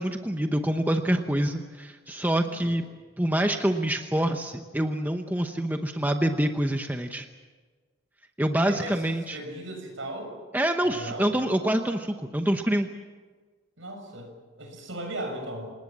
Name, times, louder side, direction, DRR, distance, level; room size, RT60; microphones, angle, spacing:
voice 1, 0.0-2.8 3.2-7.3 8.4-9.4 10.5-12.9, right 1 dB, 10° right, 5 dB, 0.9 m, -26 dB
voice 2, 2.4-2.8 8.6-10.3 10.8-11.3 13.8-15.7, right 1 dB, 65° right, 3 dB, 6.8 m, -37 dB
27.0 x 19.5 x 7.4 m, 1.4 s
head